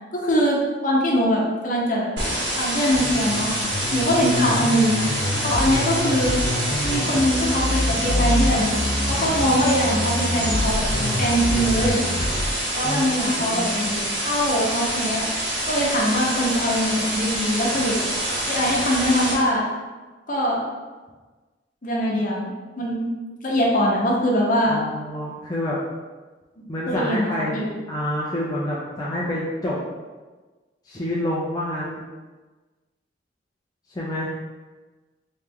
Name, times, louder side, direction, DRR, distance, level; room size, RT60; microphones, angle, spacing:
voice 1, 0.1-2.1 2.6-3.5 3.9-4.9 5.4-6.4 6.8-8.8 9.1-12.0 12.7-15.2 15.7-17.9 18.5-19.7 20.3-20.6 21.8-23.1 23.4-24.8 26.9-27.6, equal, 45° left, -3 dB, 0.9 m, -22 dB
sound 1, 2.2-19.3, right 1 dB, 85° right, 1.4 m, -26 dB
sound 2, 2.9-12.4, left 1 dB, 85° left, 1.1 m, -26 dB
voice 2, 12.8-13.9 24.7-25.8 26.7-29.8 30.9-32.0 33.9-34.3, left 1 dB, 20° left, -6 dB, 0.5 m, -28 dB
3.4 x 3.1 x 3.5 m, 1.3 s
head